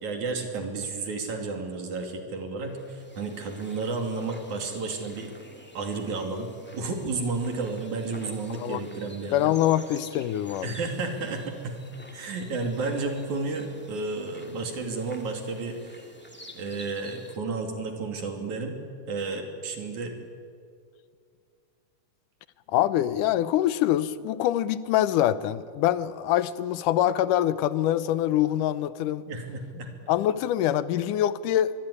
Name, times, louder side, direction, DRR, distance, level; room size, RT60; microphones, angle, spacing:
voice 1, 0.0-5.3 5.7-9.5 10.6-11.8 12.1-16.1 16.5-18.8 19.1-20.2 29.3-29.9, right 3 dB, 70° right, 4.2 m, -32 dB
sound 1, 2.7-17.4, equal, 5° left, 1.8 m, -50 dB
voice 2, 8.5-8.8 9.3-10.7 22.7-29.2 30.1-31.7, left 12 dB, 85° left, 2.4 m, -24 dB
25.0 x 22.0 x 10.0 m
omnidirectional pair, 3.6 m